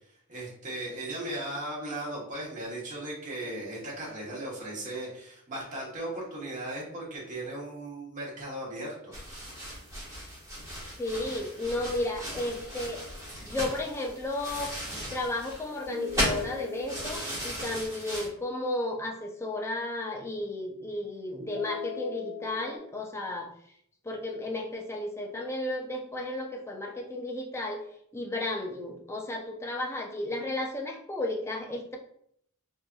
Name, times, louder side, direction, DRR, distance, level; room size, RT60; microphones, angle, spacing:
voice 1, 0.3-9.1, right 1 dB, 35° right, -5 dB, 1.0 m, -37 dB
sound 1, 9.1-18.3, equal, 15° right, 1.1 m, -36 dB
voice 2, 11.0-13.0 13.4-14.7 15.1-23.5 24.0-27.8 28.1-32.0, left 2 dB, 10° left, 1 dB, 0.4 m, -33 dB
sound 2, 12.3-13.9 15.9-19.0 21.4-22.8, left 4 dB, 90° right, 0.8 m, -43 dB
3.1 x 2.5 x 2.2 m, 0.69 s
head